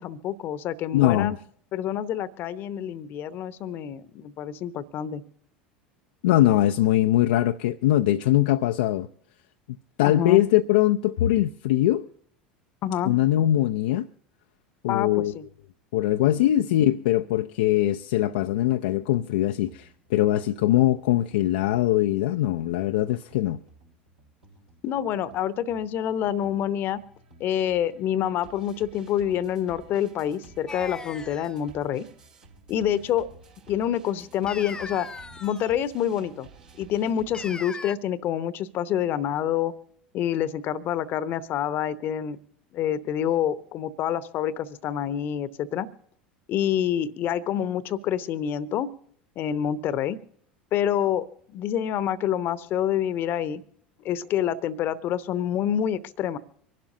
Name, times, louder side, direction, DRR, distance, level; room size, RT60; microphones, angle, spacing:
voice 1, 0.0-1.4 1.7-5.2 10.0-10.4 12.8-13.1 14.9-15.4 24.8-27.0 27.4-32.1 32.7-33.3 33.7-35.1 35.4-36.5 36.8-39.7 40.1-42.4 42.7-45.9 46.5-48.9 49.4-50.2 50.7-53.6 54.0-56.4, left 10 dB, 40° left, 0.8 m, -27 dB
voice 2, 0.9-1.3 6.2-9.1 10.0-12.1 13.0-14.1 14.8-15.3 15.9-23.6, left 14 dB, 60° left, 0.4 m, -22 dB
sound 1, 18.4-37.6, right 3 dB, 70° right, 2.6 m, -53 dB
sound 2, 30.7-31.6 34.5-35.8 37.3-38.0, left 4 dB, 15° left, 0.5 m, -38 dB
25.5 x 12.0 x 2.6 m
figure-of-eight pair, 75°, 5 cm